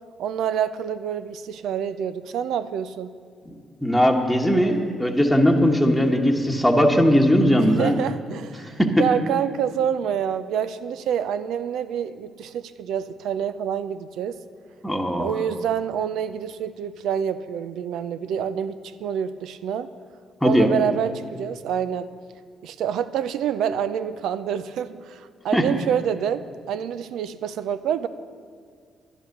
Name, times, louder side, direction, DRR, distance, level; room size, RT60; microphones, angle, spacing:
voice 1, 0.2-3.1 7.6-14.4 15.2-19.9 20.4-22.1 22.6-28.1, right 8 dB, 80° right, 13 dB, 0.5 m, -27 dB
voice 2, 3.8-7.9 8.8-8.9 14.8-15.4 20.4-20.7 25.5-25.6, equal, ahead, 1 dB, 1.2 m, -19 dB
11.0 x 10.5 x 6.6 m, 2.1 s
cardioid pair, 90°, 0 cm